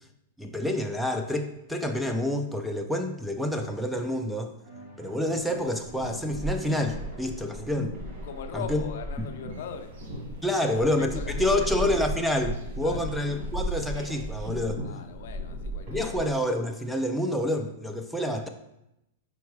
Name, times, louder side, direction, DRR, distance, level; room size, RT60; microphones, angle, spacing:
voice 1, 0.4-4.5 5.0-7.9 8.5-8.8 10.4-14.8 15.9-18.5, left 1 dB, ahead, 2 dB, 0.3 m, -28 dB
sound 1, 4.6-8.5, right 1 dB, 70° right, 1.9 m, -49 dB
sound 2, 5.8-16.4, equal, 40° right, 1.9 m, -35 dB
voice 2, 8.2-10.0 10.5-11.7 12.8-13.1 14.8-16.3, left 7 dB, 65° left, 8 dB, 0.5 m, -40 dB
sound 3, 9.5-14.5, right 2 dB, 85° right, 1.2 m, -51 dB
4.6 x 4.3 x 4.7 m, 0.86 s
supercardioid pair, 160°, 0 cm